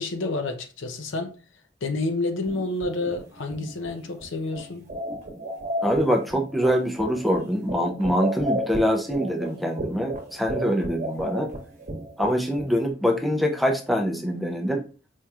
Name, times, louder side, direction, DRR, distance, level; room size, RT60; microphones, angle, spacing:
voice 1, 0.0-1.3 1.8-4.9, left 2 dB, 70° left, 0.7 m, -29 dB
sound 1, 2.4-12.9, right 1 dB, 40° right, 1.1 m, -33 dB
voice 2, 5.8-11.5 12.2-14.8, equal, ahead, 0.4 m, -24 dB
4.6 x 2.9 x 2.3 m
head